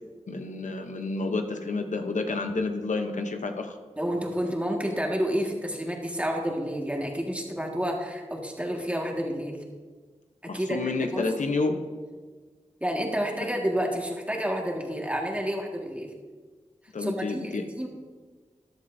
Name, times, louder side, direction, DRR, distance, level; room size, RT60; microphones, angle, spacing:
voice 1, 0.3-3.8 10.5-11.8 16.9-17.6, left 3 dB, 90° left, 5 dB, 0.8 m, -29 dB
voice 2, 4.0-9.6 10.4-11.3 12.8-16.1 17.0-17.9, equal, 10° right, 0 dB, 1.8 m, -30 dB
13.5 x 11.0 x 2.7 m, 1.4 s
wide cardioid pair, 65°, 12 cm